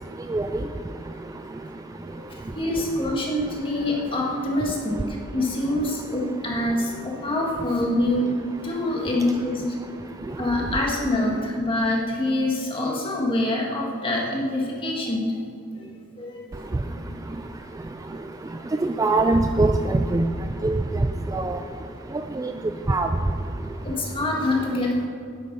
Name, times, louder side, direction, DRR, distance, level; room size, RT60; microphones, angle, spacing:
voice 1, 2.5-8.4 8.6-9.6 10.4-15.3 15.7-15.9 16.2-16.4 17.1-17.2 18.0-18.1 21.5-21.6 23.8-25.1, left 1 dB, 25° left, -2 dB, 1.9 m, -25 dB
voice 2, 18.8-20.3 20.6-20.8 21.3-21.6 22.4-22.5 22.9-23.1, right 2 dB, 15° right, 6 dB, 0.3 m, -21 dB
9.7 x 8.2 x 5.4 m, 2.2 s
head